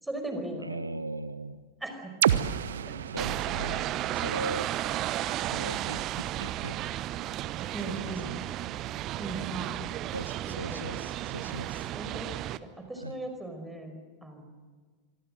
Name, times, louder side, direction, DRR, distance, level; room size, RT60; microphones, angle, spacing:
voice 1, 0.0-0.8 1.8-2.2 2.9-3.0 7.7-8.4 9.2-9.8 10.5-10.9 11.9-12.3 12.6-14.4, right 2 dB, 5° right, 5 dB, 5.1 m, -38 dB
voice 2, 0.6-1.6 3.1-4.7 5.5-6.8 7.9-8.4 10.1-11.9 13.0-13.2, right 2 dB, 85° right, 14 dB, 0.8 m, -39 dB
sound 1, 2.2-6.1, right 9 dB, 60° right, 1.0 m, -32 dB
sound 2, 3.2-12.6, right 13 dB, 35° right, 0.9 m, -33 dB
25.5 x 24.0 x 7.7 m, 1.5 s
figure-of-eight pair, 90°, 0 cm